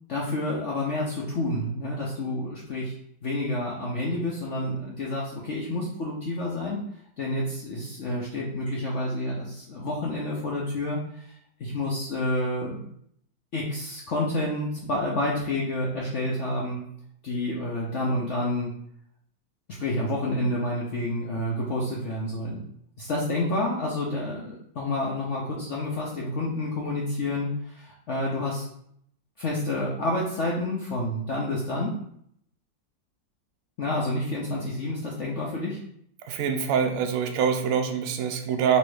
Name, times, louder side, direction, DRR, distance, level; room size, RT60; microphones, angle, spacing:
voice 1, 0.1-2.9 3.2-6.8 7.2-11.3 11.6-12.8 13.5-16.8 17.2-18.7 19.7-22.6 23.0-28.7 29.4-31.9 33.8-35.8, left 1 dB, 70° left, -4 dB, 0.7 m, -29 dB
voice 2, 36.3-38.8, right 7 dB, 80° right, 5 dB, 0.7 m, -25 dB
3.1 x 3.1 x 4.7 m, 0.69 s
omnidirectional pair, 2.0 m